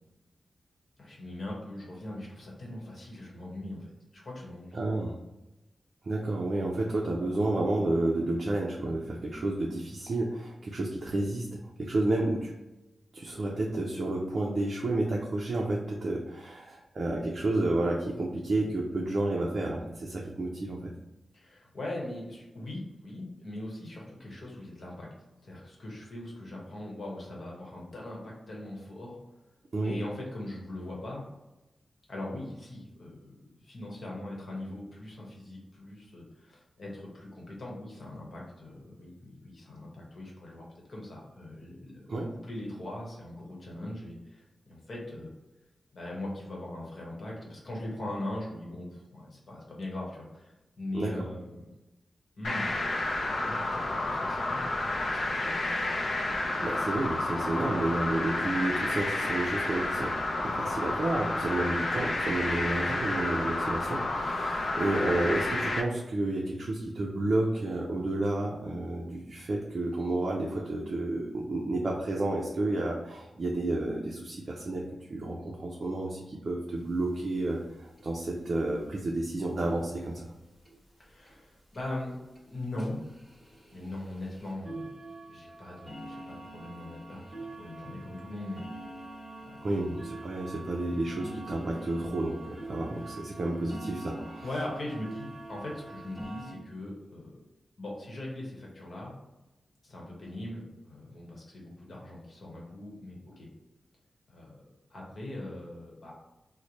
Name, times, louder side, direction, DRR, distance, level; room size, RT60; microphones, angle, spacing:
voice 1, 1.0-4.8 21.3-25.1 25.4-29.2 29.8-31.2 32.1-33.3 33.6-42.0 42.3-45.3 45.9-51.6 52.4-52.8 53.4-54.7 55.1-55.7 81.0-82.2 82.5-83.0 83.7-85.0 85.3-88.6 89.4-89.7 93.0-93.2 94.4-97.4 97.8-99.1 99.8-103.5 104.3-104.6 104.9-106.1, left 1 dB, 50° left, -3 dB, 1.1 m, -40 dB
voice 2, 4.7-5.2 6.0-12.5 13.1-20.9 29.7-29.9 42.1-42.3 50.9-51.3 56.6-60.1 60.4-74.8 75.1-80.3 89.6-94.5, right 2 dB, 45° right, -2 dB, 0.4 m, -31 dB
sound 1, 52.4-65.8, left 2 dB, 80° left, 0.5 m, -30 dB
sound 2, 76.8-76.9 77.2-77.3 77.5-77.6 78.0-78.3 79.1-79.2 79.7-79.8 80.2-80.3 80.7-80.8 81.3-81.4 81.7-81.9 82.4-82.5 82.8-96.5, right 2 dB, 25° left, 1.4 m, -45 dB
3.1 x 2.1 x 4.0 m, 1.0 s
wide cardioid pair, 160°, 0 cm